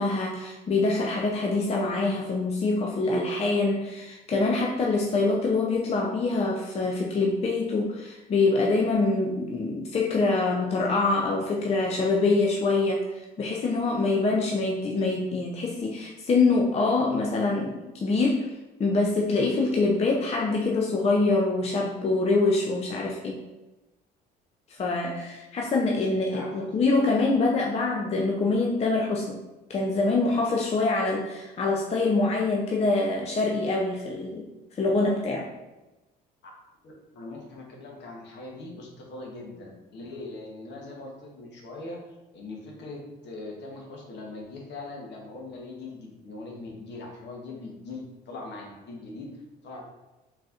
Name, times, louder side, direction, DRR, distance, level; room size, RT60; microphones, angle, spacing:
voice 1, 0.0-18.5 18.8-23.4 24.7-29.4 29.7-34.5 34.7-35.5, left 3 dB, 30° left, 0 dB, 0.5 m, -25 dB
voice 2, 26.3-26.7 27.0-27.1 27.4-27.5 36.8-42.0 42.3-49.8, left 2 dB, 55° left, 0 dB, 1.0 m, -41 dB
3.8 x 2.8 x 2.4 m, 1.0 s
supercardioid pair, 70°, 21 cm